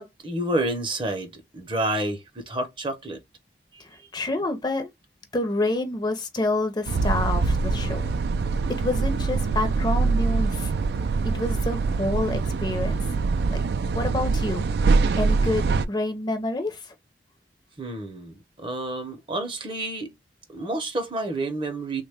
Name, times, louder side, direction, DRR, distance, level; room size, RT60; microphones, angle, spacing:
voice 1, 0.0-3.2 17.8-20.1 20.5-22.0, right 1 dB, 30° right, 0.7 m, -29 dB
voice 2, 3.8-4.9 5.3-8.1 8.8-10.7 11.2-13.0 13.5-13.6 13.9-14.6 15.2-16.9, left 2 dB, 25° left, 0.6 m, -28 dB
sound 1, 6.9-15.9, right 4 dB, 60° right, 0.3 m, -24 dB
3.4 x 2.2 x 3.4 m
head